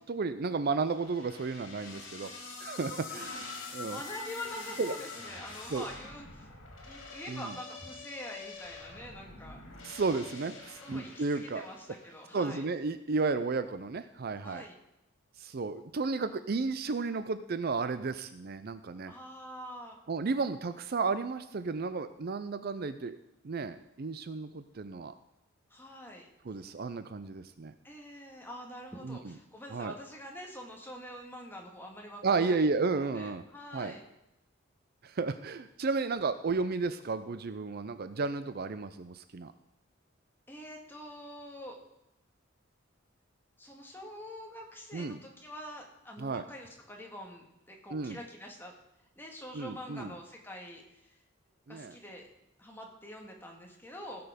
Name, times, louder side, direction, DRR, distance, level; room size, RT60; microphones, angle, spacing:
voice 1, 0.0-2.3 2.6-3.4 3.7-4.0 4.8-5.0 5.7-5.9 7.3-7.5 9.8-11.6 12.3-14.6 15.4-19.1 20.1-23.2 23.4-25.1 26.4-27.7 29.0-29.3 29.7-29.9 32.2-33.4 33.7-34.0 35.0-39.5 44.9-45.2 46.2-46.4 47.9-48.2 49.5-50.1 51.7-51.9, right 4 dB, 50° right, 12 dB, 0.5 m, -33 dB
sound 1, 0.9-12.2, left 3 dB, 75° left, 2.9 m, -45 dB
voice 2, 3.1-6.5 6.9-9.6 10.8-12.7 14.4-14.7 19.0-20.0 25.7-26.3 27.8-32.6 33.0-34.0 40.5-41.8 43.6-48.8 49.2-51.1 51.7-52.3 52.6-54.3, left 1 dB, 10° left, 1 dB, 1.9 m, -45 dB
16.5 x 6.9 x 5.1 m, 0.87 s
head